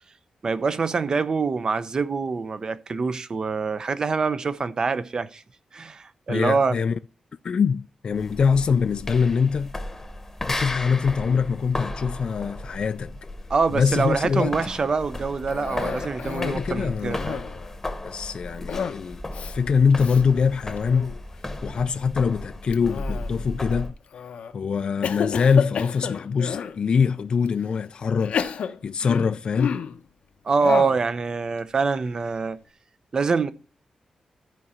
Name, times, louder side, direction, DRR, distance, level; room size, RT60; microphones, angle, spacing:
voice 1, 0.4-5.4 5.7-6.8 13.5-17.4 30.4-32.6 33.1-33.5, right 4 dB, 35° right, 0.6 m, -25 dB
voice 2, 6.3-7.0 7.4-9.7 10.5-13.2 13.7-14.5 16.4-17.8 18.0-21.1 21.6-23.9 24.5-29.8, left 6 dB, 45° left, 0.3 m, -24 dB
sound 1, 8.1-23.9, left 1 dB, 15° left, 1.0 m, -35 dB
Cough, 15.5-16.7 17.0-17.6 18.7-19.0 19.3-19.5 20.0-20.2 20.8-21.2 22.7-23.5 24.1-24.5 25.0-26.8 27.5-27.6 28.2-30.0 30.6-31.0, left 7 dB, 90° left, 0.9 m, -30 dB
14.0 x 5.0 x 4.3 m
wide cardioid pair, 175°, 2 cm